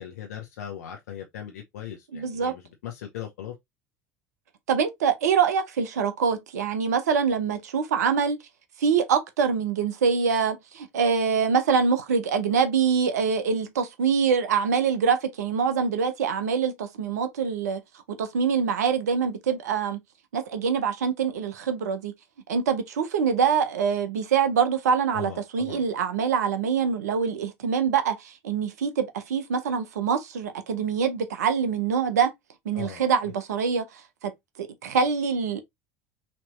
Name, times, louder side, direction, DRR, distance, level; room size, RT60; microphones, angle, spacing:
voice 1, 0.0-3.5 25.1-25.9 32.7-33.3, left 10 dB, 80° left, 0.8 m, -39 dB
voice 2, 2.1-2.5 4.7-8.4 8.8-17.8 18.2-20.0 20.3-22.1 22.5-32.3 32.7-34.3 34.6-35.6, right 6 dB, 85° right, 0.7 m, -24 dB
4.3 x 3.0 x 3.0 m
hypercardioid pair, 75°, 9 cm